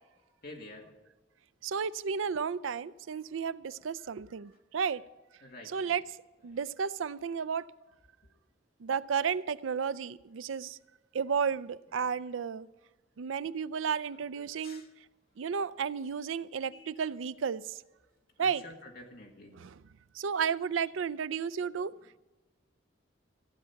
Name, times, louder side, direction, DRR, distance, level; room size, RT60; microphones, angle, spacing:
voice 1, 0.2-0.9 5.4-5.9 6.5-6.6 14.1-14.2 14.6-14.9 16.6-16.9 18.4-19.6, left 2 dB, 50° left, 2.2 m, -49 dB
voice 2, 1.6-5.0 5.7-6.0 6.4-7.7 8.8-10.8 11.1-12.7 13.2-14.9 15.4-17.8 18.4-18.6 19.5-19.7 20.1-21.9, right 6 dB, 85° right, 0.4 m, -33 dB
15.5 x 9.0 x 5.8 m
head